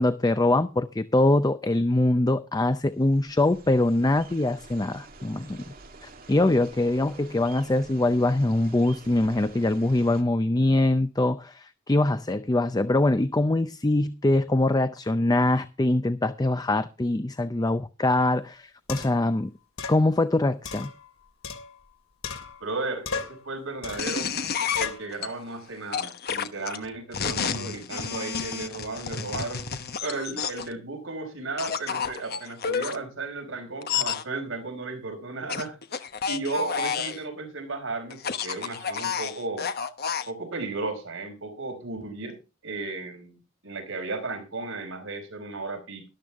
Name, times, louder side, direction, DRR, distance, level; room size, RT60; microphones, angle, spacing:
voice 1, 0.0-5.6 6.0-19.5 19.9-20.9, left 2 dB, 20° left, 0.5 m, -23 dB
sound 1, 2.9-10.2, right 3 dB, 45° right, 2.1 m, -49 dB
sound 2, 18.2-18.3 18.9-19.3 19.8-20.0 20.7-21.9 22.2-22.8 23.1-23.5 23.8-24.2 24.7-25.1, left 5 dB, 90° left, 3.0 m, -36 dB
voice 2, 22.6-24.3 24.7-29.7 30.0-39.7 40.3-42.4 42.6-46.1, right 3 dB, 70° right, 4.9 m, -34 dB
sound 3, 24.0-25.3 25.9-30.7 31.6-33.0 33.8-34.2 35.5-37.2 38.1-40.3, left 7 dB, 50° left, 1.1 m, -30 dB
13.0 x 12.0 x 3.6 m
head